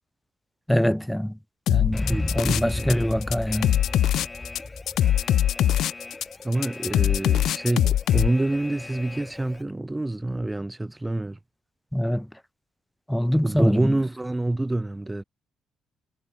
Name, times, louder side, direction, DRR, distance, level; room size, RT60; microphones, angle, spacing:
voice 1, 0.7-1.4 1.7-3.8 11.9-12.3 13.1-13.9, equal, 5° left, 4.6 m, -24 dB
sound 1, 1.7-2.9 3.2-8.3, left 12 dB, 75° left, 1.6 m, -22 dB
Alarm, 1.9-9.6, left 3 dB, 20° left, 5.6 m, -35 dB
voice 2, 2.0-3.2 6.4-11.4 13.4-15.2, right 2 dB, 15° right, 5.3 m, -27 dB
cardioid pair, 90°, 0 cm